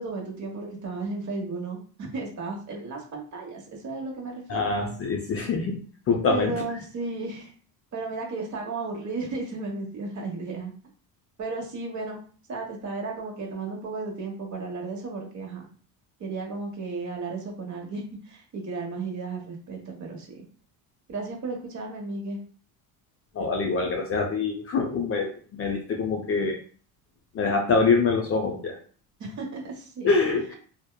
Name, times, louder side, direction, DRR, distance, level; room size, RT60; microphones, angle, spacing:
voice 1, 0.0-4.7 6.3-7.5 7.9-10.7 11.4-12.2 12.5-15.7 16.2-20.4 21.1-22.4 29.2-30.1, right 3 dB, 40° right, 0 dB, 1.0 m, -34 dB
voice 2, 4.5-6.5 23.3-26.6 27.3-28.8 30.0-30.5, left 4 dB, 30° left, 2 dB, 0.5 m, -25 dB
2.8 x 2.1 x 2.2 m, 0.43 s
supercardioid pair, 85°, 46 cm